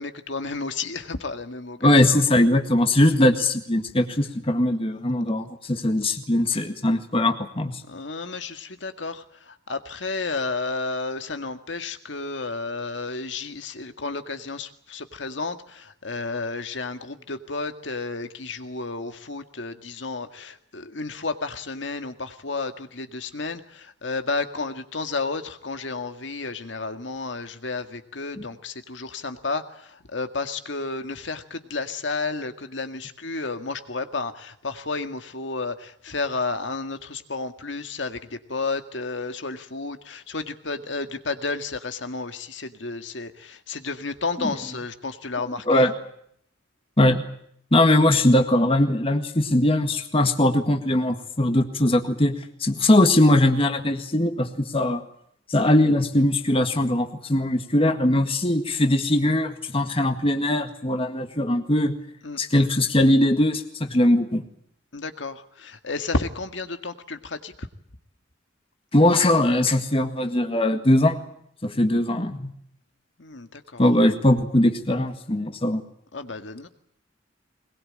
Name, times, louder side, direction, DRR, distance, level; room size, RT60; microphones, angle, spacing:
voice 1, 0.0-2.2 7.9-45.9 62.2-62.4 64.9-67.7 73.2-73.8 76.1-76.7, left 3 dB, 75° left, 8 dB, 2.0 m, -32 dB
voice 2, 1.8-7.8 28.4-28.5 44.4-44.5 45.7-45.9 47.0-47.2 47.7-55.0 55.5-61.9 62.4-64.4 68.9-71.2 71.6-72.5 73.8-75.8, left 1 dB, 30° left, 6 dB, 1.8 m, -20 dB
22.0 x 21.5 x 8.8 m, 0.69 s
head